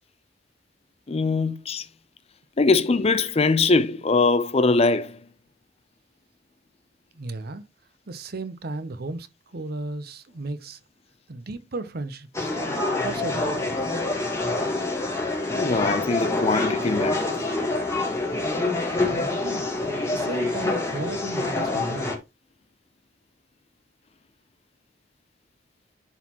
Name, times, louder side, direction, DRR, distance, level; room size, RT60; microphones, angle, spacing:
voice 1, 1.1-1.9 2.6-5.2 15.5-17.3, left 3 dB, 35° left, 0.6 m, -22 dB
voice 2, 7.1-7.6 8.1-10.8 11.3-12.5 13.0-13.9 19.0-19.7 20.1-22.2, right 2 dB, 55° right, 0.7 m, -35 dB
sound 1, 12.3-22.2, left 2 dB, 15° left, 1.8 m, -26 dB
11.0 x 4.1 x 3.0 m
head